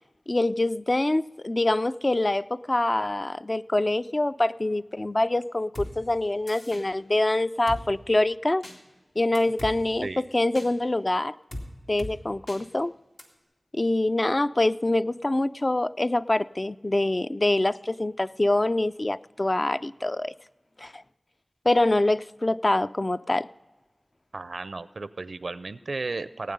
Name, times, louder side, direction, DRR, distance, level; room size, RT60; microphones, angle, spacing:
voice 1, 0.3-8.6 9.2-10.1 10.3-11.3 11.9-12.9 13.7-20.3 20.8-21.0 21.7-23.5, left 2 dB, 40° left, 0.3 m, -25 dB
Drum kit, 5.7-5.9 6.5-6.8 7.7-7.8 8.6-8.8 9.3-9.7 10.5-10.7 11.5-11.7 12.0-12.1 12.5-12.6 13.2-13.3, left 1 dB, 80° left, 2.4 m, -37 dB
voice 2, 24.3-26.5, right 3 dB, 85° right, 0.5 m, -34 dB
18.0 x 9.3 x 5.3 m
wide cardioid pair, 45°, 0 cm